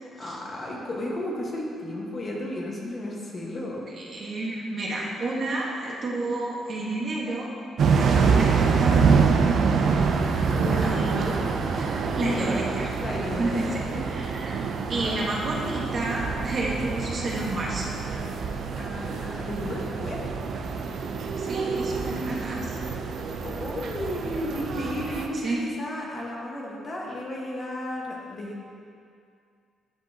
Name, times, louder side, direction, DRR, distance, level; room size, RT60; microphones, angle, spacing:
voice 1, 0.2-3.8 10.5-11.1 12.2-12.6 13.0-13.7 13.9-14.0 18.8-20.2 23.3-28.6, left 1 dB, 40° left, -3 dB, 1.4 m, -33 dB
voice 2, 4.0-7.5 7.8-9.0 10.8-11.3 11.7-12.9 13.4-14.5 14.9-17.9 21.4-22.8 25.4-25.6, right 2 dB, 50° right, -3 dB, 1.3 m, -30 dB
sound 1, 7.8-25.3, right 5 dB, 65° right, 0.5 m, -26 dB
10.0 x 5.3 x 2.8 m, 2.3 s
cardioid pair, 90°, 0 cm